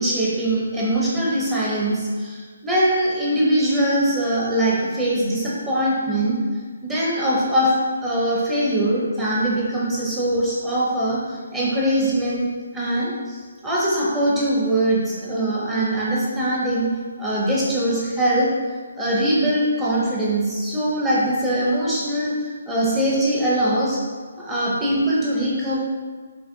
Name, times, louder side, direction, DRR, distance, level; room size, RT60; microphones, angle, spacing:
voice 1, 0.0-6.4 6.8-7.7 8.0-16.9 17.2-18.5 19.0-24.0 24.4-25.8, right 1 dB, 5° right, -7 dB, 0.5 m, -22 dB
6.2 x 2.9 x 2.5 m, 1.5 s
hypercardioid pair, 175°, 0 cm